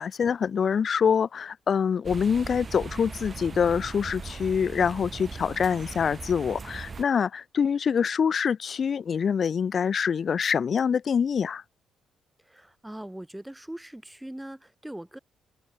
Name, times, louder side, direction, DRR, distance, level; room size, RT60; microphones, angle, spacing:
voice 1, 0.0-11.6, left 7 dB, 50° left, 0.8 m, -25 dB
sound 1, 2.0-7.0, right 4 dB, 35° right, 0.9 m, -39 dB
voice 2, 12.5-15.2, right 1 dB, 5° right, 0.9 m, -41 dB
open air
cardioid pair, 90°, 0 cm